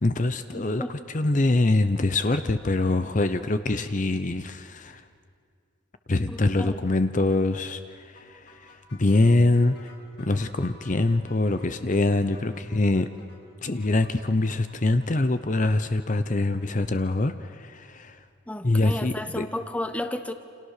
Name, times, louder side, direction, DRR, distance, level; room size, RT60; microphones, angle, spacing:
voice 1, 0.0-5.0 6.1-9.9 10.2-13.1 13.6-18.2 18.6-19.5, left 2 dB, 40° left, 10 dB, 0.8 m, -24 dB
voice 2, 0.5-1.0 6.3-6.8 18.5-20.3, left 1 dB, 5° left, 9 dB, 1.0 m, -33 dB
sound 1, 8.1-16.7, left 3 dB, 55° left, 7.1 m, -54 dB
29.0 x 27.5 x 6.7 m, 2.2 s
head